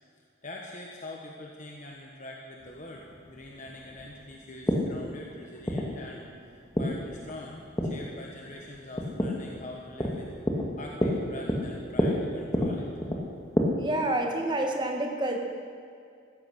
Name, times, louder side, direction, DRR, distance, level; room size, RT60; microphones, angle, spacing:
voice 1, 0.4-10.3 10.8-12.9, left 2 dB, 40° left, -1 dB, 1.3 m, -44 dB
sound 1, 2.6-13.6, equal, 15° left, 1.8 m, -31 dB
voice 2, 13.8-15.4, right 1 dB, 20° right, 2 dB, 1.6 m, -28 dB
16.0 x 13.5 x 6.4 m, 2.4 s
head